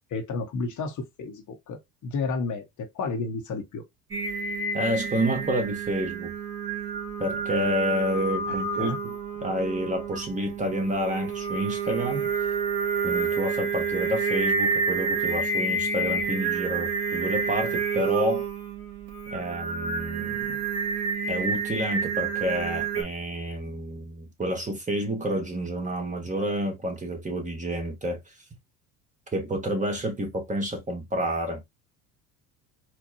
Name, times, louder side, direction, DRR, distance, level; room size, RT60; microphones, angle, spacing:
voice 1, 0.1-3.8 8.5-9.0, left 4 dB, 40° left, 0.9 m, -32 dB
Singing, 4.1-23.0, right 4 dB, 30° right, 1.9 m, -29 dB
voice 2, 4.7-6.3 7.2-12.3 13.0-18.4 19.3-20.6 21.3-28.2 29.3-31.7, equal, 15° right, 1.3 m, -29 dB
4.4 x 2.2 x 2.8 m
hypercardioid pair, 75°, 46 cm